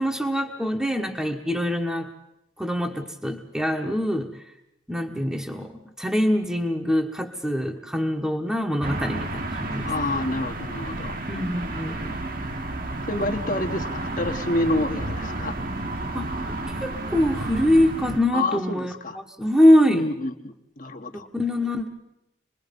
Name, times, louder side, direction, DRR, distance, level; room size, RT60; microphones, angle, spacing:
voice 1, 0.0-2.1 2.6-4.3 4.9-9.9 11.3-12.2 16.1-16.3 16.7-18.9 19.4-20.1 21.1-21.9, left 1 dB, 5° right, 2 dB, 1.2 m, -23 dB
sound 1, 8.8-18.2, right 2 dB, 45° right, 1.4 m, -31 dB
voice 2, 9.8-11.5 13.1-15.5 18.3-19.2 19.9-21.3, left 2 dB, 40° left, 5 dB, 1.3 m, -28 dB
27.0 x 21.0 x 5.3 m, 0.86 s
head